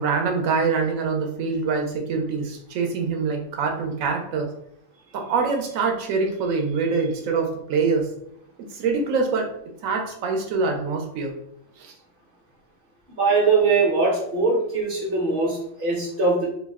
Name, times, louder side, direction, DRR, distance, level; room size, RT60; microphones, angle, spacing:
voice 1, 0.0-4.5 5.1-8.1 8.6-9.5 9.8-11.3 11.8-11.9, right 4 dB, 85° right, 2 dB, 1.0 m, -24 dB
voice 2, 13.2-16.5, right 4 dB, 50° right, -2 dB, 0.8 m, -21 dB
2.6 x 2.0 x 3.4 m, 0.73 s
omnidirectional pair, 1.4 m